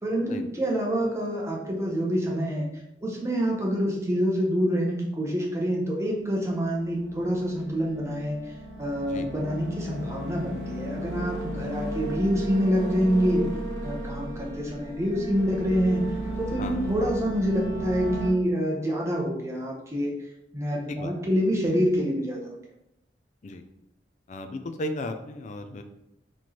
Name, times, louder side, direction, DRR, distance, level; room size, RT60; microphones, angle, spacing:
voice 1, 0.0-2.7 3.0-8.5 8.8-13.4 13.8-16.1 16.4-20.1 20.5-22.6, equal, 15° right, -2 dB, 0.7 m, -26 dB
sound 1, 6.6-18.3, right 1 dB, 85° right, 0.9 m, -35 dB
voice 2, 24.3-25.8, left 1 dB, 45° left, 8 dB, 0.3 m, -35 dB
4.2 x 3.0 x 2.8 m, 0.84 s
head